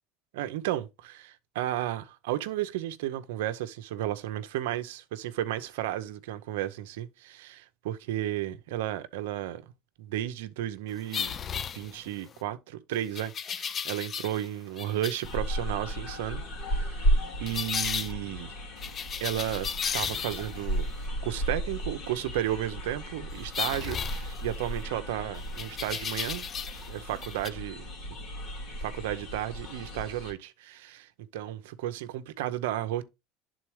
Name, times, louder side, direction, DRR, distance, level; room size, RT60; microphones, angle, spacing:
voice 1, 0.3-9.6 10.0-11.4 11.7-16.4 16.7-17.1 17.4-18.5 19.2-20.9 21.2-26.5 26.9-27.8 28.8-33.0, right 13 dB, 85° right, 0.7 m, -33 dB
sound 1, 11.1-12.3 13.1-14.5 14.8-15.3 17.5-18.1 18.8-20.6 23.5-24.8 25.6-26.9 27.2-27.5, left 7 dB, 35° left, 0.4 m, -34 dB
sound 2, 15.2-30.3, equal, 65° left, 2.4 m, -34 dB
11.0 x 3.9 x 3.1 m
supercardioid pair, 110°, 0 cm